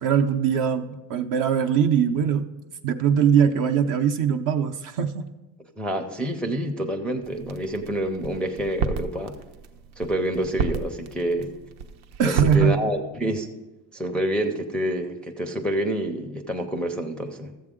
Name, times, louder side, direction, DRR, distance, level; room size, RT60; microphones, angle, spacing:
voice 1, 0.0-2.5 2.8-5.2 12.2-12.8, right 7 dB, 50° right, 7 dB, 0.6 m, -21 dB
voice 2, 5.8-9.4 10.0-11.5 12.2-13.5 13.9-17.5, right 1 dB, 5° left, 2 dB, 0.4 m, -27 dB
sound 1, 7.2-12.6, right 6 dB, 90° right, 0.8 m, -32 dB
13.5 x 7.6 x 3.7 m, 1.1 s
cardioid pair, 125°, 42 cm